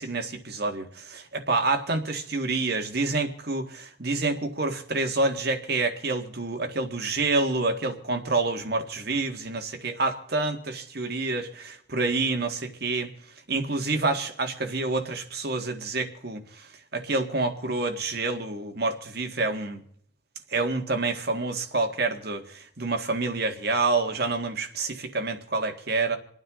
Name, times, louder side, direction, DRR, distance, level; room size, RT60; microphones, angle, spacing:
voice 1, 0.0-13.1 13.5-19.8 20.5-26.2, right 3 dB, 50° right, 5 dB, 1.8 m, -28 dB
28.0 x 9.4 x 3.7 m, 0.64 s
head